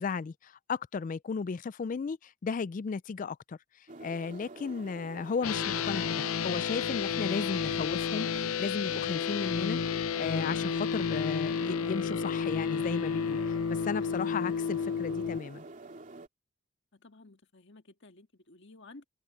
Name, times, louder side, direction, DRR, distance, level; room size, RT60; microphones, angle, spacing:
voice 1, 0.0-3.6 4.0-9.8 10.2-15.6, left 5 dB, 40° left, 0.3 m, -35 dB
sound 1, 3.9-16.3, right 2 dB, 40° right, 3.0 m, -47 dB
sound 2, 5.4-15.4, left 6 dB, 85° left, 0.6 m, -31 dB
voice 2, 16.9-19.0, left 2 dB, 55° left, 1.8 m, -54 dB
head